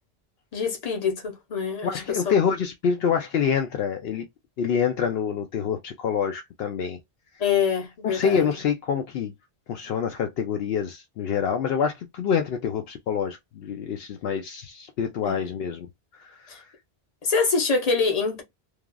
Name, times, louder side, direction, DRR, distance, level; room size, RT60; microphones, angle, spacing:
voice 1, 0.5-2.3 7.4-8.5 15.2-15.5 16.5-16.6 17.2-18.4, left 5 dB, 40° left, 0.9 m, -25 dB
voice 2, 1.8-4.3 4.6-7.0 8.0-9.3 9.7-15.9 16.2-16.6, left 7 dB, 70° left, 0.8 m, -26 dB
3.2 x 2.4 x 2.2 m
omnidirectional pair, 1.1 m